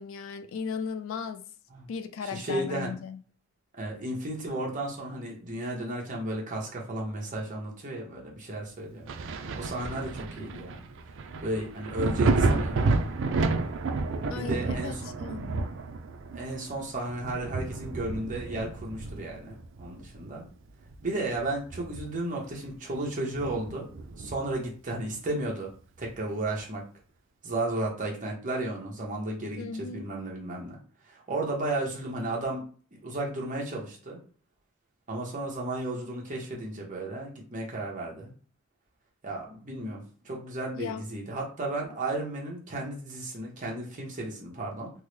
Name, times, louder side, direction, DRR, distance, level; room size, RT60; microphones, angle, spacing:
voice 1, 0.0-1.5 1.9-3.2 10.4-10.7 14.3-15.7 29.6-30.1 40.8-41.1, left 5 dB, 70° left, 0.3 m, -37 dB
voice 2, 2.3-2.9 3.8-9.1 9.6-10.8 11.4-13.1 14.3-15.1 16.3-20.4 21.0-23.9 24.2-25.7 26.0-26.8 27.4-30.8 31.1-32.7 33.0-34.2 35.1-38.3 39.2-44.9, right 2 dB, 40° right, 1.0 m, -34 dB
Thunder, 9.1-20.4 20.8-22.3 22.7-22.8 23.3-24.6 26.1-26.2, right 3 dB, 65° right, 0.4 m, -31 dB
3.6 x 2.1 x 3.1 m
head